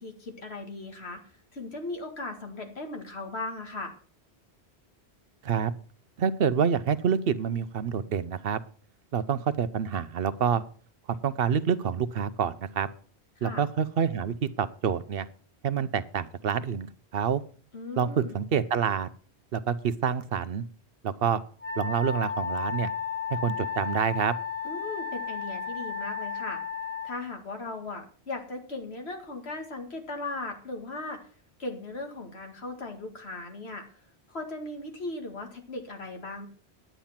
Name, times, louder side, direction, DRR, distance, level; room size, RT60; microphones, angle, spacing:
voice 1, 0.0-1.2 1.5-3.9 13.4-13.6 17.7-18.4 24.6-26.6 27.0-31.2 31.6-33.8 34.3-36.5, left 2 dB, 70° left, 4 dB, 2.3 m, -37 dB
voice 2, 6.2-8.6 9.1-10.6 11.1-12.9 13.4-15.3 15.6-17.4 18.0-19.1 19.5-20.6 21.0-21.4 21.8-22.9 23.3-24.3, right 7 dB, 65° right, 13 dB, 0.8 m, -27 dB
Wind instrument woodwind instrument, 21.6-27.1, left 6 dB, 10° right, 1.8 m, -33 dB
10.5 x 8.8 x 5.7 m, 0.43 s
omnidirectional pair, 1.1 m